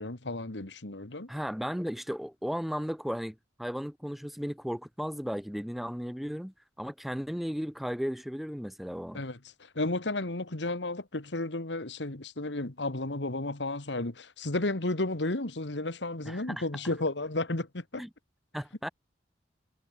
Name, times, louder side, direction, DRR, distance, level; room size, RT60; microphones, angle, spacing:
voice 1, 0.0-1.3 9.1-18.0, left 2 dB, 85° left, 2.1 m, -33 dB
voice 2, 1.3-9.2 16.3-16.6 18.0-18.1 18.5-18.9, equal, ahead, 0.6 m, -35 dB
head